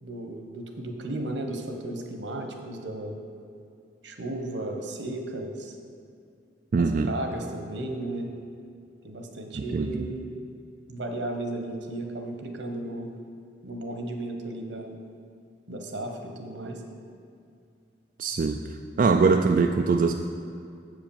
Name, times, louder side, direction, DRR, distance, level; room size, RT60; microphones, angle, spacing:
voice 1, 0.0-3.2 4.0-5.8 6.8-8.3 9.0-10.2 10.9-13.1 13.6-15.0 15.7-16.8, right 1 dB, 80° right, 4 dB, 1.1 m, -34 dB
voice 2, 6.7-7.1 9.7-9.9 18.2-18.6 19.0-20.1, right 4 dB, 45° right, 4 dB, 0.3 m, -22 dB
7.5 x 5.1 x 7.1 m, 2.5 s
head